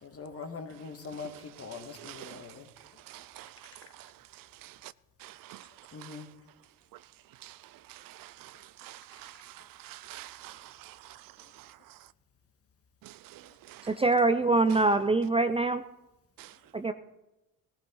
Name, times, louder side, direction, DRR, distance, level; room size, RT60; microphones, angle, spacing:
voice 1, 0.0-2.7 5.9-6.3, left 5 dB, 35° left, 1.8 m, -42 dB
voice 2, 2.0-2.4 3.1-3.5 5.5-5.6 6.0-6.1 7.4-7.5 8.2-8.5 8.8-9.3 9.8-10.9 16.4-16.5, right 15 dB, 60° right, 0.5 m, -46 dB
voice 3, 13.8-15.8 16.7-16.9, right 3 dB, 15° right, 0.6 m, -24 dB
17.0 x 14.5 x 3.9 m
supercardioid pair, 80°, 39 cm